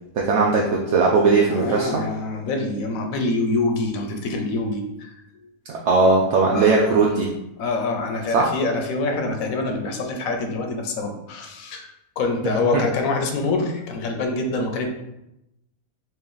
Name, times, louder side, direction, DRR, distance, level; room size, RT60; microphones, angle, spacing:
voice 1, 0.1-2.0 5.9-7.3 8.3-8.5 12.4-12.7, right 4 dB, 65° right, -2 dB, 0.7 m, -18 dB
voice 2, 1.5-5.1 6.5-6.9 7.6-11.9 12.2-14.9, left 3 dB, 75° left, 3 dB, 1.0 m, -25 dB
3.1 x 2.8 x 3.8 m, 0.86 s
omnidirectional pair, 1.5 m